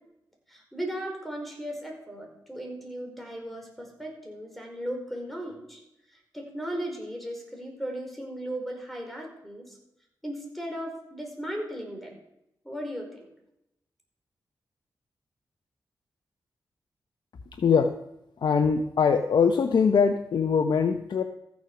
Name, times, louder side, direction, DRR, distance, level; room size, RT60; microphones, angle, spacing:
voice 1, 0.5-5.8 6.1-9.8 10.2-12.2 12.6-13.3, equal, ahead, 2 dB, 4.8 m, -36 dB
voice 2, 17.6-17.9 18.4-21.2, left 6 dB, 70° left, 7 dB, 0.8 m, -22 dB
14.5 x 7.4 x 6.1 m, 0.84 s
cardioid pair, 55°, 8 cm